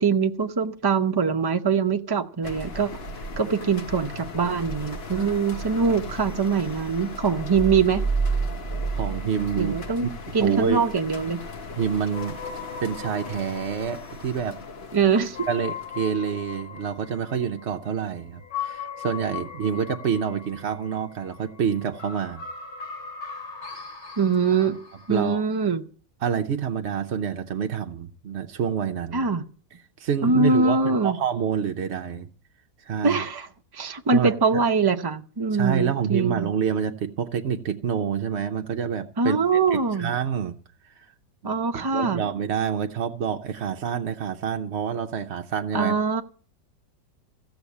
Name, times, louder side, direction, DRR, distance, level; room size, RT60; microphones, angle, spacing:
voice 1, 0.0-2.9 3.4-8.0 9.6-10.1 10.3-11.4 14.9-15.4 24.2-24.8 25.1-25.8 29.1-29.4 30.2-31.2 33.0-33.5 33.7-36.5 39.2-40.1 41.4-42.2 45.7-46.2, right 5 dB, 35° right, 0.3 m, -23 dB
sound 1, 2.4-17.8, left 2 dB, 40° left, 1.1 m, -39 dB
sound 2, 7.5-10.5, right 4 dB, 5° right, 1.2 m, -28 dB
voice 2, 8.9-10.1 10.4-10.8 11.8-12.4 12.8-14.6 15.5-22.4 24.6-24.7 25.1-25.4 26.2-29.2 30.0-32.3 32.8-33.2 34.1-34.6 35.5-39.4 39.7-40.5 41.4-46.0, right 7 dB, 55° right, 0.7 m, -27 dB
sound 3, 12.1-25.2, left 7 dB, 65° left, 3.7 m, -39 dB
15.5 x 7.1 x 8.4 m
omnidirectional pair, 2.0 m